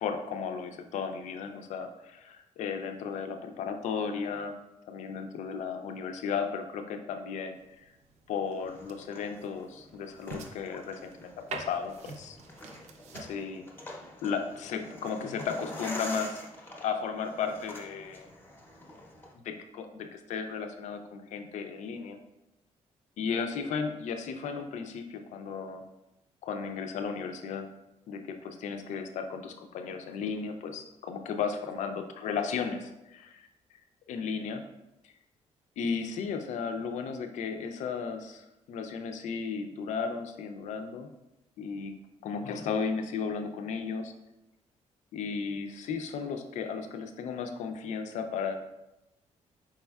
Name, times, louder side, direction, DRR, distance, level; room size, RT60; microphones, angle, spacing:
voice 1, 0.0-4.6 4.9-7.9 8.3-12.4 13.2-13.6 14.2-16.4 16.8-18.3 19.4-22.2 23.2-25.8 26.4-27.7 28.1-33.5 34.1-34.6 35.8-41.1 41.6-41.9 42.2-44.1 45.1-48.5, left 6 dB, 70° left, 7 dB, 0.5 m, -35 dB
sound 1, 7.5-13.4, right 4 dB, 65° right, 0.6 m, -47 dB
sound 2, 8.5-19.3, left 1 dB, 15° left, 0.6 m, -46 dB
4.7 x 4.3 x 2.3 m, 0.91 s
cardioid pair, 140°, 13 cm